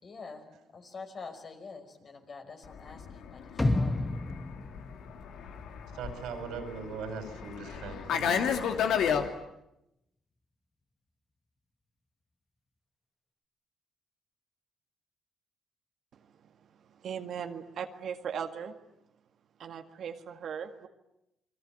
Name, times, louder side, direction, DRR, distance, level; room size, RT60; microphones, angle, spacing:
voice 1, 0.0-4.1, left 4 dB, 45° left, 5 dB, 5.3 m, -46 dB
Fixed-wing aircraft airplane, 2.8-9.3, left 7 dB, 75° left, 2.6 m, -32 dB
sound 1, 3.6-5.7 6.1-6.2, left 2 dB, 20° left, 1.9 m, -31 dB
voice 2, 5.9-8.6, right 5 dB, 85° right, 7 dB, 5.8 m, -40 dB
voice 3, 17.0-18.7 19.6-20.9, right 7 dB, 65° right, 5 dB, 1.9 m, -38 dB
29.0 x 22.0 x 9.3 m, 0.86 s
cardioid pair, 90°, 0 cm